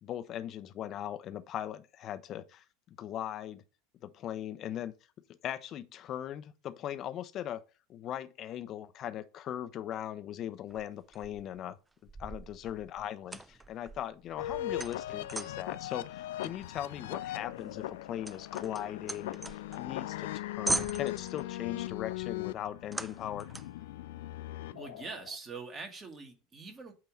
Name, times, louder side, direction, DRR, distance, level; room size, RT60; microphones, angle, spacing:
voice 1, 0.0-2.6 3.0-3.6 4.0-4.9 5.4-7.6 7.9-11.8 12.2-23.5, left 11 dB, 40° left, 0.7 m, -39 dB
sound 1, 10.7-11.6 12.1-15.7 16.4-20.0 20.3-20.4 20.7-21.5 22.9-23.8, right 2 dB, 10° right, 0.4 m, -40 dB
sound 2, 14.4-25.4, left 14 dB, 65° left, 0.3 m, -39 dB
voice 2, 24.7-26.9, right 4 dB, 25° right, 1.6 m, -43 dB
8.5 x 2.9 x 5.1 m
figure-of-eight pair, 80°, 0 cm